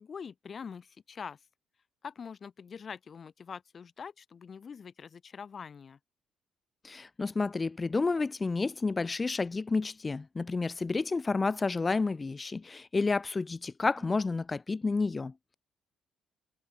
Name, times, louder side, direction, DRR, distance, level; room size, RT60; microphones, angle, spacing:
voice 1, 0.0-1.4 2.0-6.0, left 6 dB, 50° left, 1.7 m, -44 dB
voice 2, 6.8-15.5, left 3 dB, 30° left, 0.9 m, -30 dB
sound 1, 10.3-10.4 11.0-12.4 12.7-13.6 13.9-14.4, equal, 5° right, 3.6 m, -59 dB
supercardioid pair, 60°, 0 cm